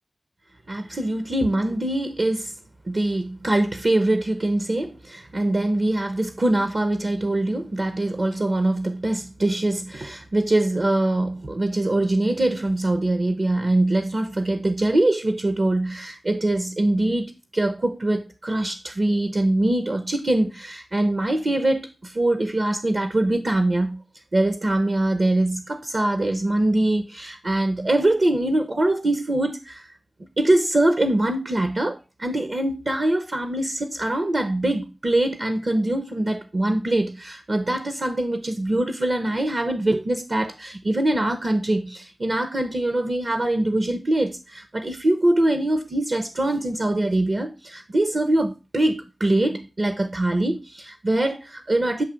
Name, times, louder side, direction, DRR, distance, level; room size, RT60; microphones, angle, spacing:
voice 1, 0.7-2.5 2.9-24.0 24.3-29.9 30.4-52.0, right 1 dB, 55° right, 0.8 m, -23 dB
8.1 x 2.7 x 5.1 m
cardioid pair, 45°, 0 cm